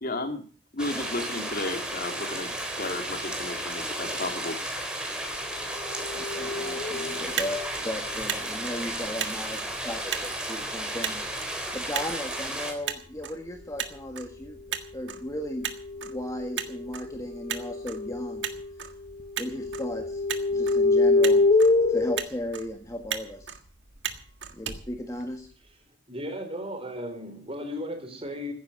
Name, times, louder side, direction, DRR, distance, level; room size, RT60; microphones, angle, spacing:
voice 1, 0.0-0.4 0.7-4.6, left 2 dB, 55° left, 6 dB, 2.5 m, -33 dB
sound 1, 0.8-12.7, right 1 dB, 5° right, 3.6 m, -33 dB
sound 2, 5.8-7.3 15.1-18.7 19.0-22.2, left 3 dB, 35° left, 1.3 m, -26 dB
voice 2, 6.1-14.6 14.9-15.7 16.0-18.5 19.4-20.2 20.5-21.4 21.9-23.5 24.5-25.5, left 1 dB, 20° left, 4 dB, 1.7 m, -36 dB
Motor vehicle (road), 7.2-25.7, right 8 dB, 75° right, 1.7 m, -38 dB
voice 3, 26.1-28.5, equal, 30° right, 6 dB, 4.0 m, -35 dB
15.5 x 10.0 x 7.0 m, 0.42 s
head